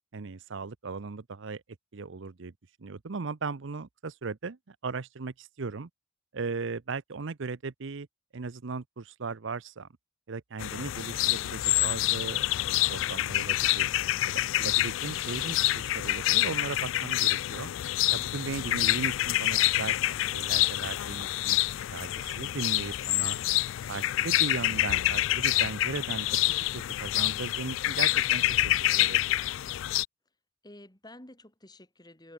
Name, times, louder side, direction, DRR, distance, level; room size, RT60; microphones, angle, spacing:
voice 1, 0.1-1.6 1.9-2.5 2.8-5.9 6.3-8.1 8.3-9.9 10.3-12.6 12.9-13.9 14.3-17.7 18.1-21.6 21.9-23.4 23.9-29.3, right 4 dB, 65° right, 0.7 m, -37 dB
sound 1, 10.6-30.0, left 15 dB, 65° left, 0.3 m, -27 dB
voice 2, 30.6-32.3, left 1 dB, 20° left, 3.5 m, -50 dB
head